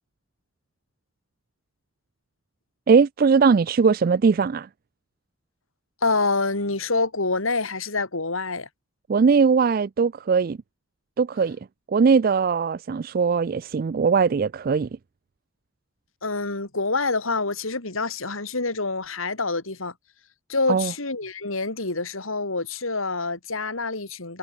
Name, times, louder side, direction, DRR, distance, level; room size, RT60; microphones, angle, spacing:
voice 1, 2.9-4.7 9.1-10.6 11.2-11.6 11.9-14.9 20.7-20.9, right 5 dB, 45° right, 0.3 m, -20 dB
voice 2, 6.0-8.7 16.2-19.9 20.5-24.4, left 3 dB, 90° left, 3.9 m, -26 dB
head